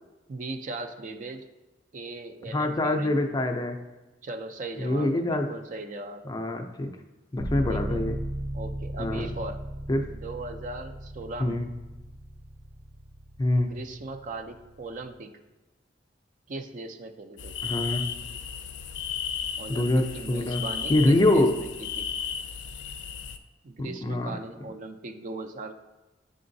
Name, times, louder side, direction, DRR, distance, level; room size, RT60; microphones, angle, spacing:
voice 1, 0.3-1.5 1.9-3.2 4.2-6.3 7.7-8.0 8.5-9.6 10.1-11.6 13.7-15.4 16.5-17.5 19.6-22.1 23.6-25.7, right 2 dB, 45° right, 7 dB, 0.4 m, -39 dB
voice 2, 2.5-3.8 4.8-5.5 6.2-7.0 7.3-8.2 9.0-9.3 9.9-10.1 11.4-11.7 13.4-13.7 17.6-18.0 19.7-20.6 20.9-21.6 23.8-24.3, left 1 dB, 20° left, 5 dB, 0.4 m, -25 dB
sound 1, 7.4-15.1, equal, 65° right, 1.1 m, -37 dB
sound 2, 17.4-23.4, left 7 dB, 85° left, 0.4 m, -34 dB
9.4 x 3.8 x 2.6 m, 1.1 s
head